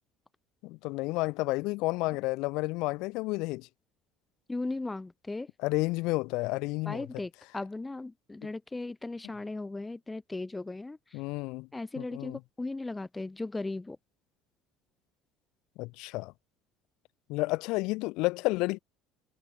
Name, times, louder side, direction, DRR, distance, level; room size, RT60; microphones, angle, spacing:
voice 1, 0.6-3.7 5.6-7.0 11.1-11.7 12.0-12.4 15.8-16.3 17.3-18.8, left 23 dB, 65° left, 0.7 m, -31 dB
voice 2, 4.5-5.5 6.8-11.2 11.7-14.0, left 2 dB, 10° left, 0.5 m, -37 dB
cardioid pair, 170°, 0 cm